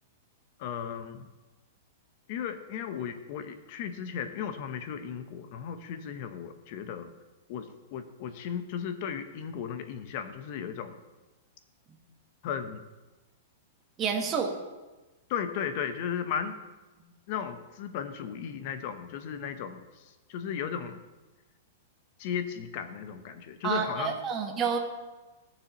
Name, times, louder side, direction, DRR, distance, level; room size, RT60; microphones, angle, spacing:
voice 1, 0.6-1.3 2.3-7.1 7.5-10.9 12.4-12.8 15.3-16.5 17.3-21.0 22.2-24.2, left 8 dB, 45° left, 9 dB, 0.8 m, -35 dB
voice 2, 14.0-14.5 23.6-24.8, right 6 dB, 20° right, 2 dB, 1.2 m, -29 dB
16.0 x 7.0 x 3.0 m, 1.2 s
supercardioid pair, 160°, 0 cm